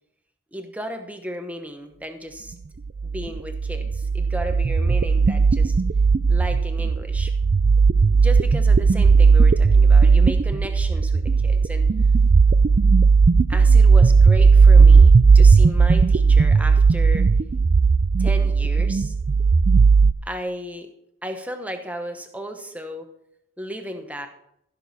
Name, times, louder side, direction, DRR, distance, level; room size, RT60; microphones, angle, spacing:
voice 1, 0.5-2.5 3.0-5.8 6.3-7.3 8.2-11.9 13.5-17.3 18.2-19.1 20.2-20.9 21.2-23.1 23.6-24.3, equal, 5° right, 5 dB, 0.9 m, -34 dB
sound 1, 3.0-20.1, right 4 dB, 35° right, 0.3 m, -16 dB
15.0 x 6.7 x 4.1 m, 0.78 s
head